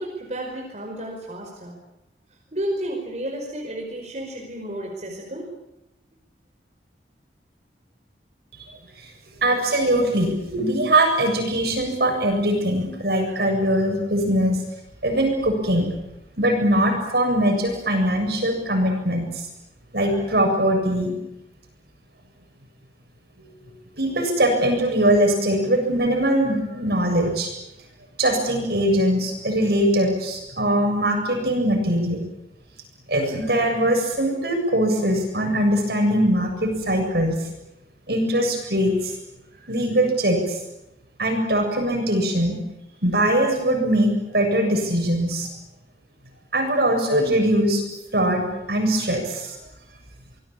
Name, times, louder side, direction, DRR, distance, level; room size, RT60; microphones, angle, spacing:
voice 1, 0.0-1.8 2.5-5.5, right 1 dB, 40° right, -1 dB, 5.2 m, -32 dB
voice 2, 9.4-14.6 15.0-15.9 16.4-19.5 19.9-21.2 24.0-27.5 28.2-32.2 33.1-37.4 38.1-39.1 39.7-40.6 41.2-42.6 43.0-45.5 46.5-47.8 48.1-49.5, right 1 dB, 60° right, 3 dB, 7.6 m, -21 dB
26.0 x 20.5 x 8.8 m, 0.92 s
head